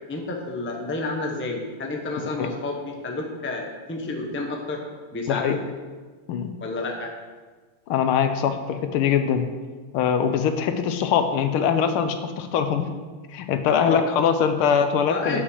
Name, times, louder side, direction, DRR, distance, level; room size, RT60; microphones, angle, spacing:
voice 1, 0.1-4.8 5.1-5.6 6.6-7.1 13.8-14.0 15.1-15.4, left 2 dB, 10° left, 1 dB, 0.6 m, -30 dB
voice 2, 7.9-9.4 9.9-12.9 13.3-15.4, left 7 dB, 80° left, 8 dB, 1.6 m, -22 dB
9.3 x 6.2 x 6.3 m, 1.4 s
omnidirectional pair, 2.4 m